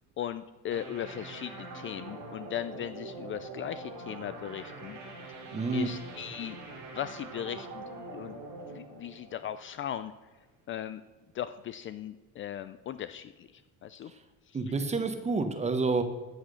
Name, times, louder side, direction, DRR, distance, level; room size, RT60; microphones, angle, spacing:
voice 1, 0.2-5.0 5.7-6.6 6.9-7.8 8.1-8.4 8.7-10.1 10.7-11.0 11.3-14.1 14.5-14.6, left 10 dB, 40° left, 12 dB, 0.4 m, -38 dB
sound 1, 0.7-10.1, right 2 dB, 85° right, 4.0 m, -44 dB
voice 2, 5.5-5.9 14.5-16.0, right 3 dB, 20° right, 8 dB, 1.2 m, -28 dB
14.0 x 6.2 x 6.5 m, 1.2 s
cardioid pair, 135°, 33 cm